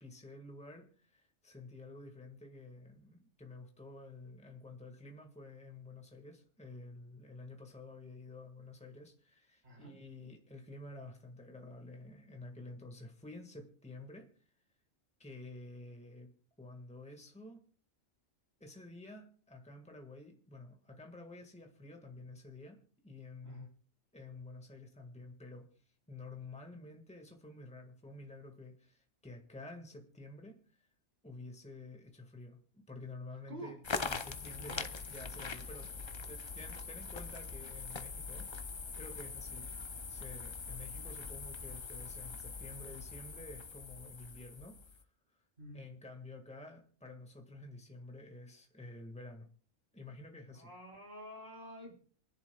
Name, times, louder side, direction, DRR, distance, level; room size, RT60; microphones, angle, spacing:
voice 1, 0.0-14.3 15.2-16.3 16.6-17.6 18.6-22.8 23.0-23.7 24.1-25.7 26.1-30.6 31.2-35.9 36.3-38.5 39.0-45.1 45.7-49.5 49.9-50.7, left 2 dB, 5° left, 3 dB, 1.7 m, -50 dB
sound 1, 33.8-45.0, left 4 dB, 35° left, 0.4 m, -43 dB
voice 2, 50.5-51.9, right 1 dB, 50° right, -1 dB, 4.0 m, -48 dB
28.0 x 10.5 x 2.3 m, 0.43 s
omnidirectional pair, 1.3 m